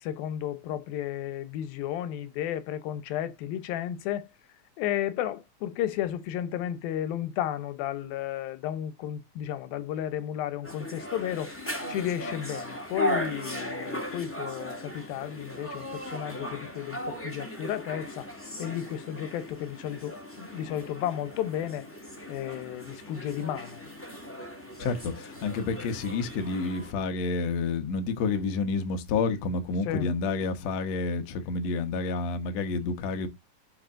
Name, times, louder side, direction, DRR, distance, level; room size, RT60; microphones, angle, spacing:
voice 1, 0.0-4.3 4.8-11.5 11.9-18.3 18.6-21.9 22.3-23.8 29.9-30.1, left 11 dB, 85° left, 2.6 m, -33 dB
sound 1, 10.6-26.9, equal, 10° left, 0.8 m, -38 dB
voice 2, 24.8-33.3, left 4 dB, 60° left, 2.1 m, -29 dB
12.0 x 4.9 x 2.5 m
omnidirectional pair, 4.1 m